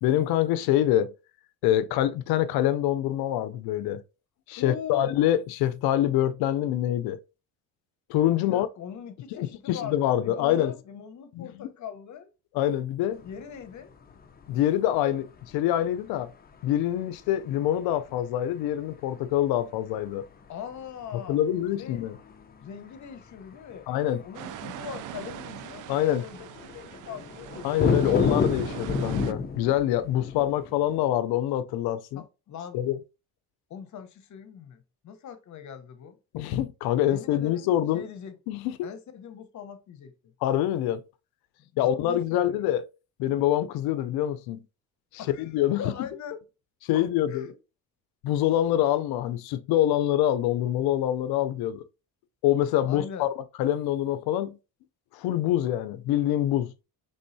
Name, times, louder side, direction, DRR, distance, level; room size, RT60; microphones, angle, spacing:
voice 1, 0.0-1.1 1.6-4.0 4.5-7.2 8.1-8.7 9.7-10.7 11.3-11.7 12.5-13.2 14.5-15.3 15.5-16.3 16.6-20.2 21.3-22.2 23.9-24.2 25.9-26.2 27.6-32.2 32.7-33.0 36.3-38.0 38.5-38.9 40.4-41.0 41.8-42.8 43.2-44.6 45.4-45.8 46.8-47.5 48.2-51.8 52.4-53.3 53.6-54.6 55.1-56.7, left 12 dB, 90° left, 0.5 m, -25 dB
voice 2, 4.6-5.1 8.4-12.3 13.2-13.9 20.5-21.4 21.8-22.1 22.6-23.9 24.2-27.8 32.1-32.8 33.7-36.2 37.1-37.7 37.9-38.4 38.8-40.3 41.6-42.6 45.2-45.5 45.8-46.4 46.9-47.5 52.9-53.3, left 8 dB, 50° left, 0.9 m, -41 dB
sound 1, 13.1-31.0, left 5 dB, 25° left, 0.6 m, -33 dB
sound 2, 24.3-29.3, right 12 dB, 60° right, 0.4 m, -40 dB
5.3 x 3.6 x 2.6 m
cardioid pair, 120°, 36 cm